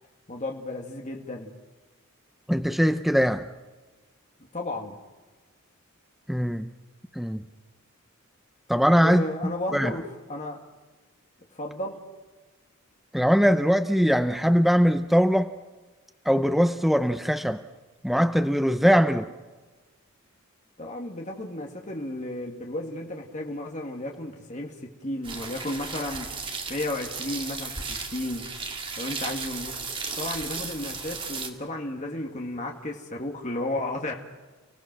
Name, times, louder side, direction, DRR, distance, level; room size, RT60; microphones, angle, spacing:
voice 1, 0.3-1.5 4.5-5.0 9.0-10.7 11.5-12.0 20.8-26.3 26.7-28.5 29.0-34.1, left 1 dB, 35° left, 1 dB, 2.1 m, -33 dB
voice 2, 2.5-3.5 6.3-6.7 7.2-7.4 8.7-9.9 13.1-15.5 16.3-17.6 18.0-19.3, equal, ahead, 8 dB, 0.6 m, -21 dB
sound 1, 25.2-31.5, right 4 dB, 25° right, 2.1 m, -35 dB
30.0 x 17.5 x 6.1 m, 1.3 s
head